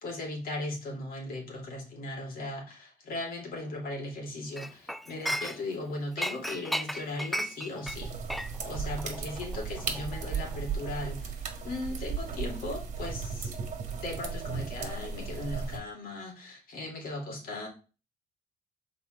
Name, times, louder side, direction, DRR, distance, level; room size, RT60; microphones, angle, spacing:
voice 1, 0.0-8.1 8.6-13.5 14.0-17.7, left 2 dB, 60° left, 1 dB, 2.7 m, -38 dB
Chink clink, 4.6-5.8 6.2-10.8 11.1-11.3, equal, ahead, 0.3 m, -35 dB
sound 1, 7.8-15.8, right 5 dB, 45° right, 1.6 m, -36 dB
5.9 x 4.2 x 4.5 m, 0.33 s
cardioid pair, 110°, 17 cm